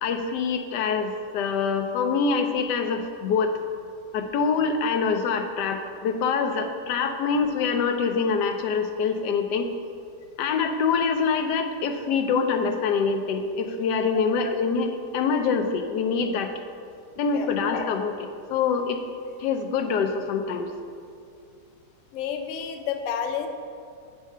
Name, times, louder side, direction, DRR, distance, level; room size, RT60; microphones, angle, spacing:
voice 1, 0.0-3.5 4.1-9.7 10.4-16.5 17.2-19.0 19.4-20.7, left 5 dB, 90° left, 6 dB, 1.3 m, -25 dB
voice 2, 22.1-23.5, left 8 dB, 60° left, 5 dB, 0.9 m, -30 dB
8.1 x 4.8 x 5.5 m, 2.4 s
omnidirectional pair, 1.8 m